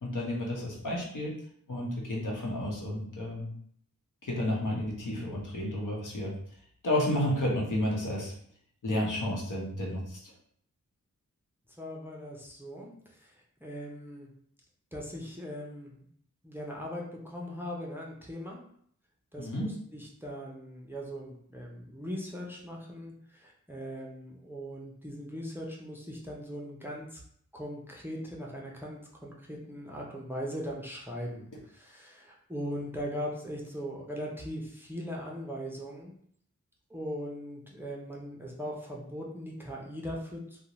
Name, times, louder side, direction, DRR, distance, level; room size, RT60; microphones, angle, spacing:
voice 1, 0.0-1.3 1.7-3.5 4.2-6.3 6.8-8.3 8.8-10.3 19.4-19.7, left 1 dB, 70° left, -3 dB, 0.8 m, -31 dB
voice 2, 11.8-14.3 14.9-16.0 16.4-18.6 19.3-27.2 27.5-36.1 36.9-40.6, equal, 5° right, -2 dB, 0.5 m, -40 dB
2.5 x 2.1 x 2.9 m, 0.65 s
wide cardioid pair, 75°, 32 cm